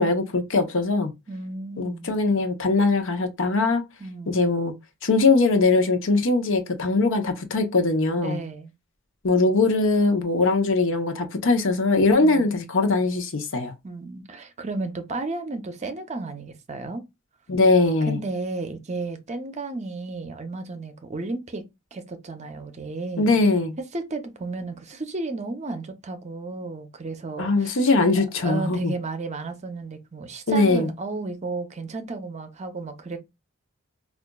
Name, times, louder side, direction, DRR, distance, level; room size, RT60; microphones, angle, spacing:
voice 1, 0.0-1.1 1.8-3.8 4.3-4.7 5.0-8.4 9.2-13.7 17.5-18.2 23.2-23.7 27.4-28.9 30.5-30.9, left 3 dB, 60° left, 0.7 m, -21 dB
voice 2, 1.3-2.2 4.0-4.4 8.2-8.7 12.2-12.6 13.8-17.0 18.1-21.6 21.9-23.3 23.9-27.7 28.4-33.2, right 3 dB, 35° right, 0.6 m, -33 dB
4.9 x 2.4 x 2.2 m
head